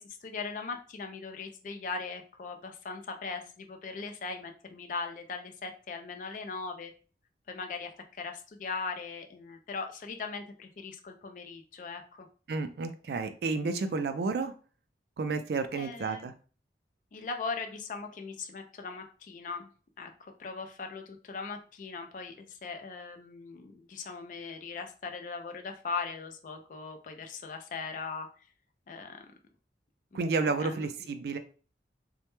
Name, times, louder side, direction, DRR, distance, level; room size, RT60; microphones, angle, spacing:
voice 1, 0.0-6.9 7.5-12.3 15.7-16.3 17.1-19.7 20.0-28.3 28.9-29.2 30.1-30.3 30.6-31.1, left 4 dB, 45° left, 5 dB, 0.3 m, -39 dB
voice 2, 12.5-14.5 15.2-16.3 30.1-31.4, right 4 dB, 65° right, 8 dB, 0.3 m, -31 dB
2.1 x 2.1 x 2.9 m, 0.38 s
head